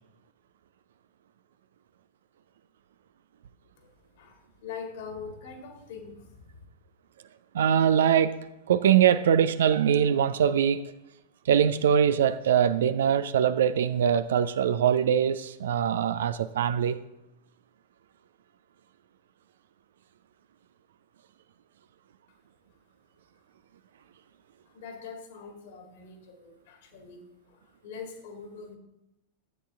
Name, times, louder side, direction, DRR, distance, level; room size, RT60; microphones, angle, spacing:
voice 1, 3.8-6.6 24.7-28.8, left 5 dB, 55° left, 4 dB, 2.2 m, -43 dB
voice 2, 7.5-8.3 8.7-10.9 11.5-17.0, right 8 dB, 60° right, 14 dB, 0.5 m, -23 dB
12.5 x 8.5 x 3.5 m, 0.90 s
figure-of-eight pair, 90°, 0 cm